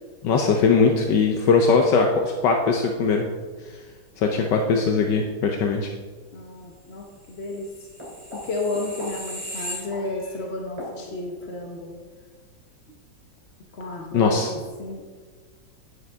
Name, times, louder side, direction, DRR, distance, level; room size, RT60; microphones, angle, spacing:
voice 1, 0.2-3.2 4.2-5.9 14.1-14.5, left 4 dB, 75° left, 3 dB, 1.4 m, -20 dB
voice 2, 6.3-7.9 8.4-11.9 13.7-15.1, left 2 dB, 45° left, 0 dB, 1.0 m, -32 dB
sound 1, 7.5-10.4 10.8-10.9, equal, 15° right, 3.1 m, -36 dB
11.0 x 9.7 x 3.5 m, 1.5 s
omnidirectional pair, 2.0 m